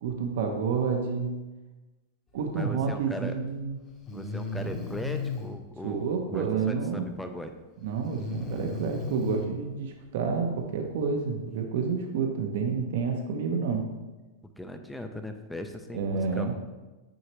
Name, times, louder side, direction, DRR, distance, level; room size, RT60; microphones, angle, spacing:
voice 1, 0.0-1.4 2.3-3.8 5.8-7.1 7.8-13.9 15.9-16.5, right 5 dB, 60° right, 3 dB, 0.8 m, -29 dB
voice 2, 2.5-3.4 4.1-6.0 6.3-7.5 14.6-16.6, left 1 dB, 5° left, 6 dB, 0.4 m, -38 dB
Breathing, 4.1-5.6 8.0-9.5, left 3 dB, 20° left, 0.8 m, -34 dB
6.3 x 5.6 x 3.0 m, 1.2 s
supercardioid pair, 160°, 0 cm